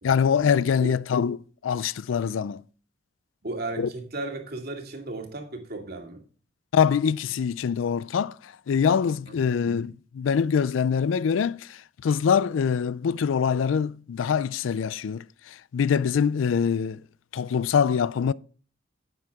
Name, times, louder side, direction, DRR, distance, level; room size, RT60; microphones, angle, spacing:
voice 1, 0.0-2.6 3.8-3.9 6.7-17.0 17.3-18.3, left 7 dB, 90° left, 0.4 m, -24 dB
voice 2, 3.4-6.2 9.3-9.5, right 2 dB, 55° right, 2.2 m, -35 dB
10.5 x 7.7 x 3.5 m
head